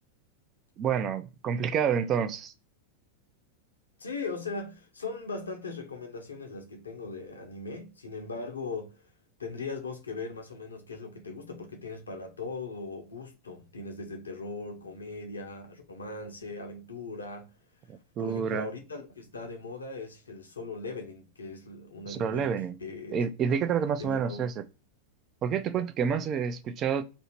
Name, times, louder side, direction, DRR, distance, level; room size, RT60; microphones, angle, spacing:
voice 1, 0.8-2.5 17.9-18.7 22.1-22.8 23.1-24.6 25.4-27.0, right 7 dB, 30° right, 0.4 m, -28 dB
voice 2, 4.0-9.1 9.4-17.5 18.2-22.5 22.8-23.2 24.0-24.5, left 3 dB, 75° left, 0.8 m, -39 dB
2.8 x 2.6 x 4.2 m
figure-of-eight pair, 90°, 0 cm